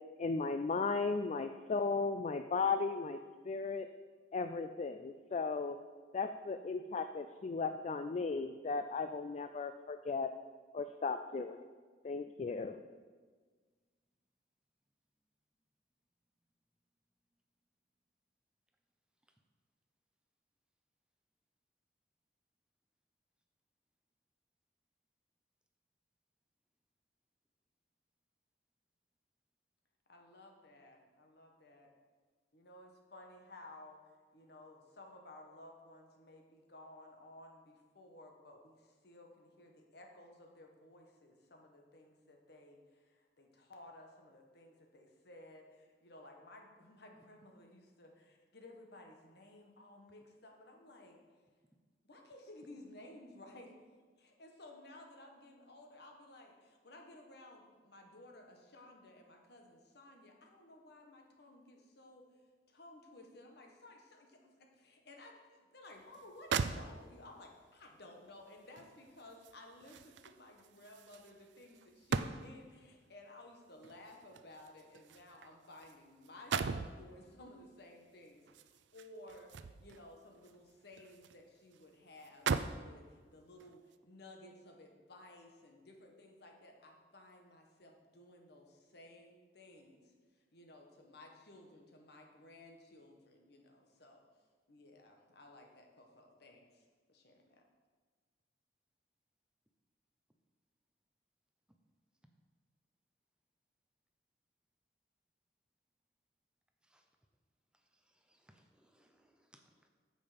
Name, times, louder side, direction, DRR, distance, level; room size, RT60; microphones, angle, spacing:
voice 1, 0.2-3.2 3.5-3.9 4.3-5.8 6.1-10.3 10.7-11.6 12.0-12.8, left 4 dB, 40° left, 9 dB, 0.3 m, -36 dB
voice 2, 30.1-31.9 32.5-34.0 34.3-51.2 52.0-53.7 54.2-62.3 62.7-90.1 90.5-94.2 94.7-97.6, left 1 dB, 60° left, 2 dB, 1.5 m, -56 dB
sound 1, 66.1-66.2 66.5-67.3 68.8-72.7 73.8-76.0 76.2-77.0 78.5-80.0 80.4-81.4 81.7-81.8 82.2-82.9 83.6-83.8, right 5 dB, 75° right, 0.4 m, -39 dB
voice 3, 107.7-109.9, right 1 dB, 5° right, 4 dB, 0.8 m, -69 dB
9.4 x 7.4 x 5.2 m, 1.5 s
head